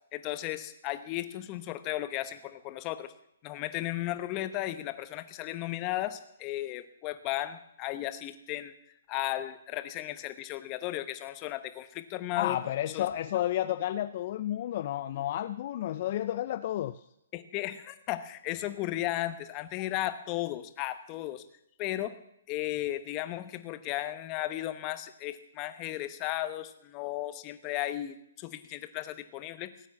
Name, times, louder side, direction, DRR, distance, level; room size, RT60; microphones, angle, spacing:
voice 1, 0.1-3.1 3.4-8.7 9.1-12.6 12.9-13.1 17.3-21.4 21.8-22.1 22.5-29.7, left 15 dB, 25° left, 11 dB, 1.0 m, -35 dB
voice 2, 12.4-17.0, left 12 dB, 40° left, 11 dB, 0.5 m, -31 dB
17.5 x 9.1 x 7.3 m, 0.78 s
hypercardioid pair, 165°, 0 cm